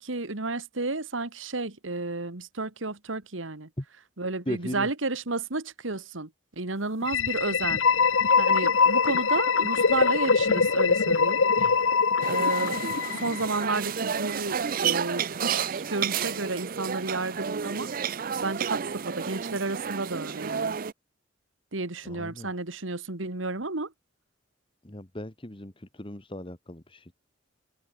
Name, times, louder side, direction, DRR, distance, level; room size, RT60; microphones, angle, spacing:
voice 1, 0.0-3.7 4.2-6.3 6.6-7.8 8.4-11.4 12.2-17.9 18.4-20.8 21.7-23.9, right 3 dB, 80° right, 2.1 m, -32 dB
voice 2, 4.4-4.9 11.5-11.8 22.0-22.5 24.8-27.2, left 1 dB, 25° left, 1.6 m, -37 dB
sound 1, 7.0-13.8, left 5 dB, 80° left, 1.1 m, -23 dB
sound 2, 12.2-20.9, right 7 dB, 45° right, 0.5 m, -31 dB
open air
head